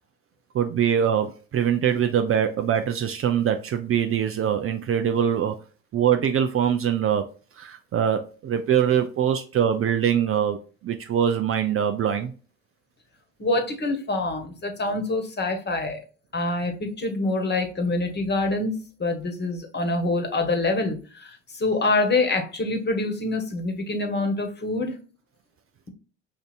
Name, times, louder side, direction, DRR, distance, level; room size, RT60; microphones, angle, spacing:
voice 1, 0.5-5.6 5.9-7.2 7.6-12.3, right 9 dB, 40° right, 0.5 m, -23 dB
voice 2, 13.4-16.0 16.3-25.0, left 2 dB, 30° left, 1.3 m, -26 dB
5.1 x 2.7 x 2.5 m
hypercardioid pair, 70°, 36 cm